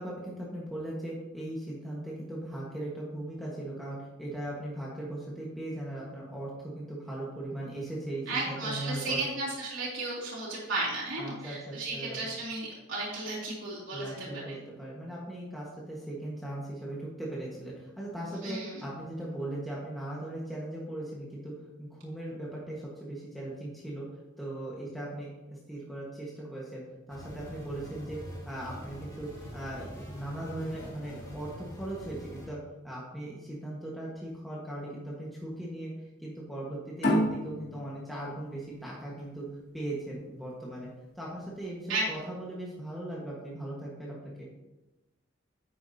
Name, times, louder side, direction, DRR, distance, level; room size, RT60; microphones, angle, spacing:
voice 1, 0.0-9.3 11.2-12.3 13.9-21.5 21.8-24.0 24.4-32.6 32.8-39.5 39.7-40.9 41.1-44.5, right 1 dB, ahead, -6 dB, 1.5 m, -38 dB
voice 2, 8.3-14.6 18.4-18.8 41.9-42.1, right 2 dB, 70° right, -7 dB, 3.0 m, -34 dB
sound 1, 27.1-32.5, equal, 15° left, 2.9 m, -44 dB
sound 2, 37.0-40.2, left 1 dB, 50° left, 2.5 m, -31 dB
10.5 x 8.3 x 2.8 m, 1.0 s
head